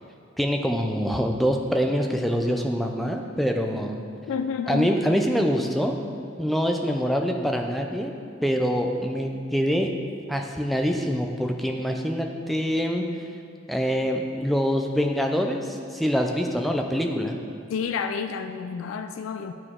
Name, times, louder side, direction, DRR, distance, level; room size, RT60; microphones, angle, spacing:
voice 1, 0.4-4.0 4.7-6.0 6.4-8.1 8.4-9.9 10.3-13.0 13.7-17.4, equal, ahead, 3 dB, 0.4 m, -25 dB
voice 2, 4.3-5.0 17.7-19.5, left 6 dB, 90° left, 8 dB, 0.3 m, -29 dB
10.0 x 4.8 x 3.7 m, 2.5 s
head